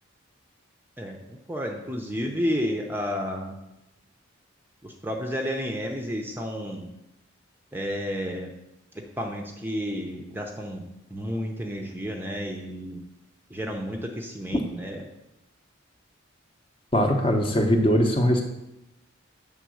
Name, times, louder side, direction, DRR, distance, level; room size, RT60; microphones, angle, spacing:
voice 1, 1.0-3.5 4.8-6.9 7.7-8.5 8.9-13.0 13.5-15.0, equal, 10° right, 2 dB, 0.6 m, -31 dB
voice 2, 16.9-18.4, equal, 25° left, 4 dB, 0.8 m, -21 dB
8.1 x 3.7 x 6.2 m, 0.90 s
head